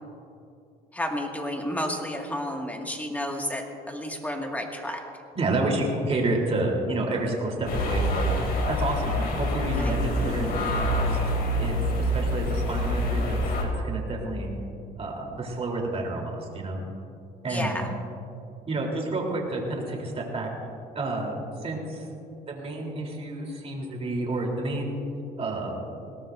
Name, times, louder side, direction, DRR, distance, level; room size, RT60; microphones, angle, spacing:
voice 1, 0.9-5.0 9.7-10.0 17.5-17.9, left 1 dB, 10° left, 1 dB, 2.0 m, -31 dB
voice 2, 5.3-8.4 8.7-11.3 11.6-14.5 15.0-16.8 17.4-17.9 18.7-20.5 20.9-21.4 21.6-22.0 22.5-25.0 25.4-25.7, right 2 dB, 35° right, 0 dB, 3.5 m, -30 dB
sound 1, 7.7-13.6, equal, 60° left, 2.9 m, -26 dB
20.5 x 18.0 x 2.6 m, 2.6 s
cardioid pair, 110°, 17 cm